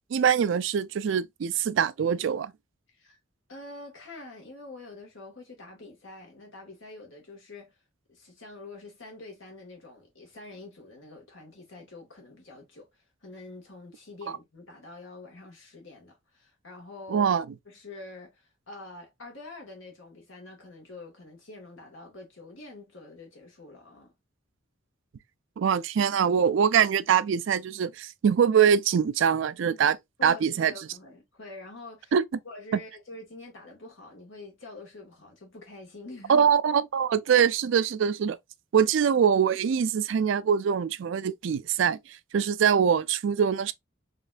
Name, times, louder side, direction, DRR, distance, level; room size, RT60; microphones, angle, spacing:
voice 1, 0.1-2.5 17.1-17.4 25.6-30.0 30.2-30.7 32.1-32.2 36.3-38.4 38.7-42.0 42.3-43.7, right 7 dB, 65° right, 0.4 m, -23 dB
voice 2, 3.5-7.8 8.1-17.3 17.6-24.1 30.2-32.1 32.4-36.5, left 2 dB, 70° left, 1.8 m, -46 dB
4.1 x 2.9 x 2.5 m
head